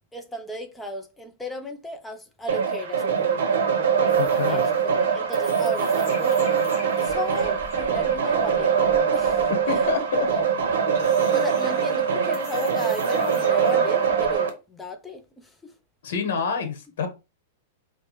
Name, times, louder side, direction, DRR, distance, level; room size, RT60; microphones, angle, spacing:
voice 1, 0.1-3.5 4.4-6.5 7.0-8.8 9.1-9.8 10.3-10.4 11.3-15.7, left 1 dB, 5° left, 0.5 m, -35 dB
sound 1, 2.5-14.5, right 6 dB, 85° right, 0.8 m, -23 dB
sound 2, 4.1-14.3, left 3 dB, 35° left, 1.7 m, -45 dB
voice 2, 4.2-4.6 9.7-10.3 16.0-17.1, left 6 dB, 65° left, 1.0 m, -27 dB
4.5 x 2.1 x 3.0 m
supercardioid pair, 170°, 0 cm